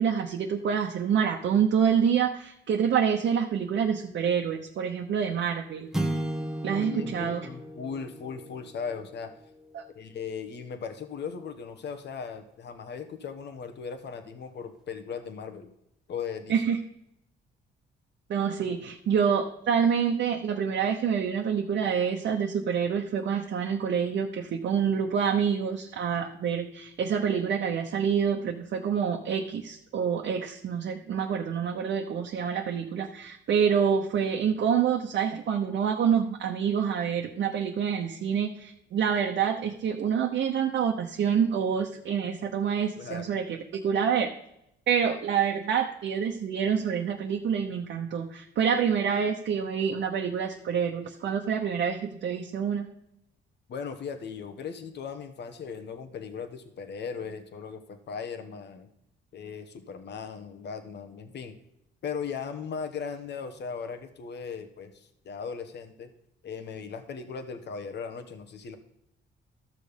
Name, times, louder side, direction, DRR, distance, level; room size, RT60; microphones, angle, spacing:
voice 1, 0.0-5.9 6.6-7.5 9.7-9.8 16.5-16.8 18.3-44.3 44.9-52.9, right 7 dB, 65° right, 1 dB, 1.0 m, -27 dB
sound 1, 5.9-10.4, right 1 dB, ahead, 1.1 m, -35 dB
voice 2, 6.7-9.3 9.9-15.7 16.1-16.6 43.0-43.2 53.7-58.9 59.3-61.6 62.0-66.1 66.4-68.8, left 6 dB, 60° left, 8 dB, 1.3 m, -38 dB
13.5 x 6.4 x 5.2 m, 0.80 s
cardioid pair, 90°, 20 cm